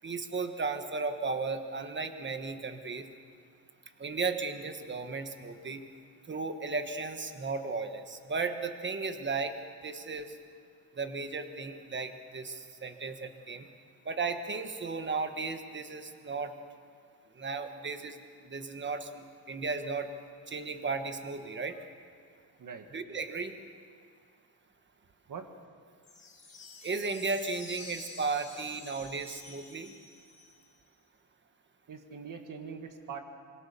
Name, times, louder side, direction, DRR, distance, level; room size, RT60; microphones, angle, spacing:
voice 1, 0.0-3.1 4.0-5.8 6.3-9.6 9.8-10.4 10.9-13.7 14.0-16.5 17.3-20.1 20.5-21.8 22.9-23.6 26.8-29.9, right 4 dB, 30° right, 7 dB, 1.4 m, -35 dB
sound 1, 26.0-30.8, left 3 dB, 20° left, 4.3 m, -49 dB
voice 2, 31.9-33.2, right 6 dB, 55° right, 6 dB, 1.9 m, -42 dB
25.5 x 22.5 x 6.9 m, 2.2 s
wide cardioid pair, 175°, 39 cm